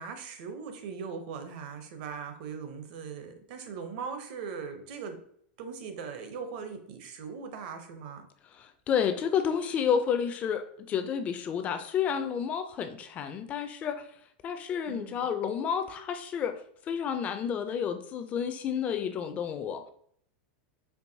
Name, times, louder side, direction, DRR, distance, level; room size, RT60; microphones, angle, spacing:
voice 1, 0.0-5.2 5.6-8.3 14.9-15.3, right 6 dB, 55° right, 7 dB, 0.7 m, -40 dB
voice 2, 8.5-14.1 14.4-19.9, left 7 dB, 25° left, 9 dB, 0.3 m, -30 dB
4.5 x 3.0 x 2.7 m, 0.64 s
supercardioid pair, 155°, 6 cm